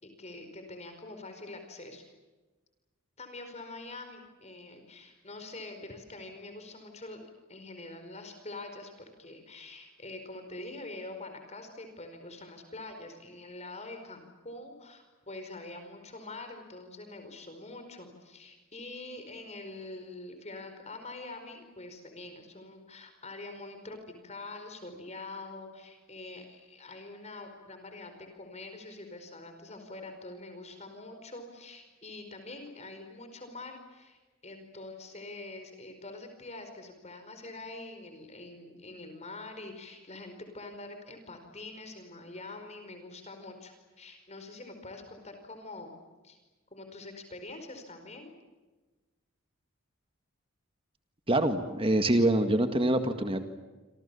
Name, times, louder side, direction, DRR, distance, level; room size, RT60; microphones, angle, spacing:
voice 1, 0.0-2.0 3.2-46.0 46.2-46.4 46.7-48.3, left 2 dB, 30° left, 6 dB, 4.9 m, -45 dB
voice 2, 51.3-53.4, right 1 dB, 25° right, 7 dB, 1.9 m, -25 dB
28.0 x 27.0 x 7.1 m, 1.2 s
head